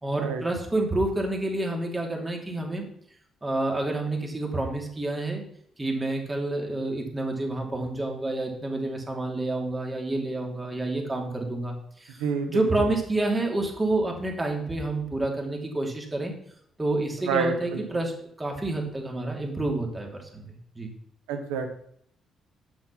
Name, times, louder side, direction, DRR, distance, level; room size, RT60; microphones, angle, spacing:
voice 1, 0.0-2.9 3.4-5.4 5.8-12.2 12.5-16.3 16.8-18.1 18.4-20.9, right 2 dB, 25° right, 1 dB, 2.9 m, -29 dB
voice 2, 12.1-12.9 17.2-17.8 21.3-21.7, right 5 dB, 85° right, 6 dB, 1.1 m, -29 dB
7.8 x 6.5 x 5.8 m, 0.67 s
hypercardioid pair, 50°, 0 cm